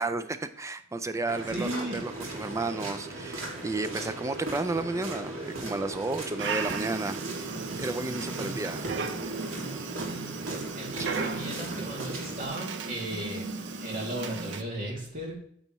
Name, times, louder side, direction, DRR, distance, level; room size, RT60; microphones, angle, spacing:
voice 1, 0.0-8.8, right 2 dB, 15° right, 10 dB, 0.4 m, -32 dB
sound 1, 1.3-12.5, right 2 dB, 80° right, 2.3 m, -38 dB
voice 2, 1.5-2.0 8.4-9.0 10.0-10.3 10.7-15.4, right 1 dB, 40° right, -3 dB, 2.5 m, -36 dB
Dog, 6.4-14.6, right 4 dB, 60° right, 0.6 m, -35 dB
8.9 x 6.8 x 3.1 m, 0.64 s
head